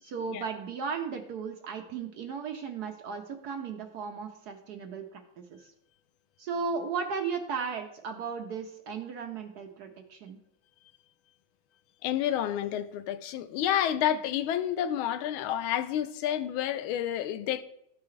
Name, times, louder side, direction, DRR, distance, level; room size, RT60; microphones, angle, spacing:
voice 1, 0.0-5.2 5.5-5.7 6.4-10.4 14.1-14.2, right 5 dB, 65° right, 1.0 m, -35 dB
voice 2, 12.0-17.6, left 10 dB, 85° left, 1.4 m, -29 dB
13.5 x 4.7 x 3.2 m
omnidirectional pair, 2.2 m